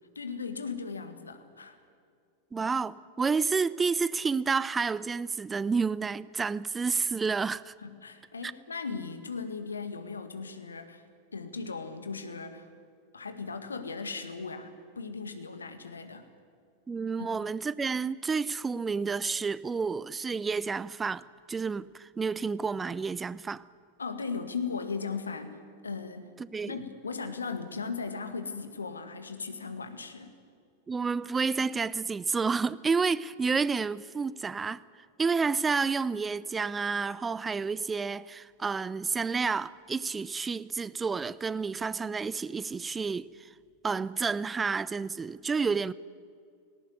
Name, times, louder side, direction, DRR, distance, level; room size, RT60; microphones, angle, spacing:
voice 1, 0.2-1.8 7.8-11.0 11.3-12.7 13.1-16.3 17.2-17.3 24.0-26.3 26.7-30.3, left 5 dB, 75° left, 1.9 m, -37 dB
voice 2, 2.5-7.7 8.4-8.5 16.9-23.6 26.5-26.8 30.9-34.8 35.2-43.5 43.8-45.9, right 5 dB, 15° right, 0.4 m, -30 dB
18.5 x 18.5 x 9.6 m
figure-of-eight pair, 90°, 0 cm